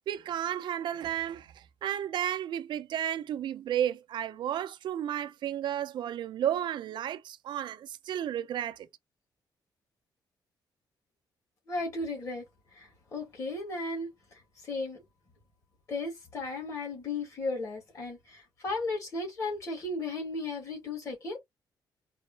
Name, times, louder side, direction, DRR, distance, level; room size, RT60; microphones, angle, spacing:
voice 1, 0.1-1.5 1.8-8.9, right 10 dB, 70° right, 0.5 m, -32 dB
voice 2, 11.7-12.4 12.7-14.1 14.6-15.0 15.9-21.4, left 3 dB, 40° left, 2.7 m, -35 dB
4.1 x 3.1 x 3.2 m
wide cardioid pair, 170°, 8 cm